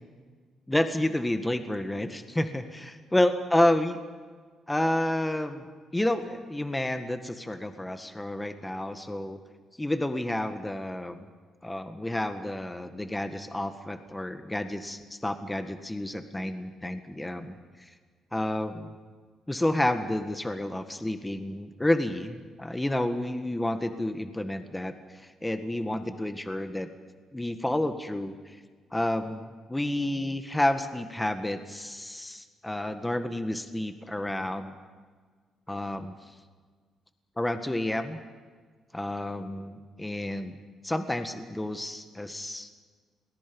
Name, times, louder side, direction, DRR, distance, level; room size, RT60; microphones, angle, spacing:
voice 1, 0.7-4.0 4.7-9.4 9.8-11.2 11.6-17.9 18.3-18.9 19.5-26.9 27.3-28.6 28.9-34.7 35.7-36.2 37.4-38.2 38.9-40.5 40.8-42.7, left 1 dB, 10° left, 8 dB, 1.6 m, -30 dB
29.5 x 20.5 x 5.4 m, 1.5 s
cardioid pair, 90°, 0 cm